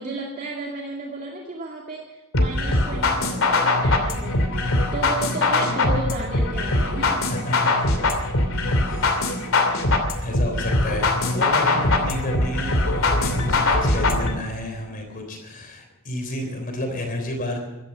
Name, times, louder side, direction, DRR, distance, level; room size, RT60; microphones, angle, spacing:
voice 1, 0.0-4.5 4.9-7.3 8.0-8.1, right 2 dB, 40° right, -1 dB, 2.2 m, -33 dB
sound 1, 2.3-14.3, left 2 dB, 65° left, 2.8 m, -22 dB
voice 2, 7.3-7.9 8.9-9.3 10.2-17.6, left 1 dB, 40° left, 4 dB, 3.5 m, -31 dB
16.0 x 13.0 x 6.4 m, 1.1 s
head